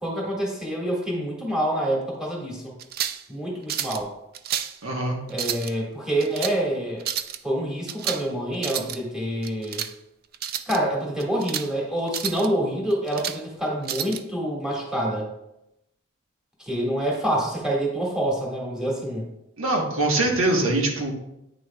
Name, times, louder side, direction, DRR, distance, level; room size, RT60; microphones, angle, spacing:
voice 1, 0.0-2.6 3.3-4.1 5.3-7.1 7.4-9.8 10.7-15.3 16.7-19.2, right 1 dB, 5° right, -3 dB, 1.8 m, -27 dB
sound 1, 2.8-3.2 3.7-4.0 4.3-4.8 5.3-5.7 6.2-6.6 7.0-7.4 7.9-8.3 8.5-9.0 9.4-9.9 10.3-10.8 11.2-11.7 12.1-12.5 12.9-13.4 13.9-14.2, right 9 dB, 50° right, 0.4 m, -30 dB
voice 2, 4.8-5.2 19.6-21.1, right 2 dB, 85° right, 0 dB, 1.3 m, -23 dB
9.1 x 6.4 x 2.3 m, 0.86 s
head